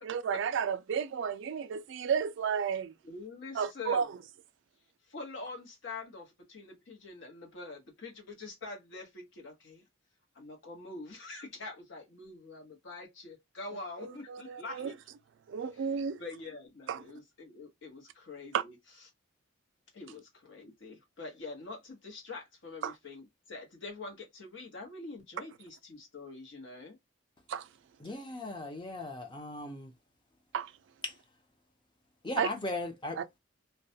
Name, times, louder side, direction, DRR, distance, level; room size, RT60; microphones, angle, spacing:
voice 1, 0.0-2.9 3.5-4.1 14.0-14.9 15.5-16.2 16.9-17.0 18.5-18.6 22.8-22.9 27.5-27.7 30.5-30.7 32.4-32.5 33.2-33.4, right 7 dB, 60° right, 0.3 m, -32 dB
voice 2, 3.0-4.2 5.1-9.8 10.3-14.9 15.7-18.7 19.9-27.0, left 3 dB, 60° left, 0.9 m, -45 dB
voice 3, 28.0-29.9 31.0-31.1 32.2-33.4, left 2 dB, 25° left, 0.6 m, -38 dB
2.3 x 2.1 x 2.6 m
head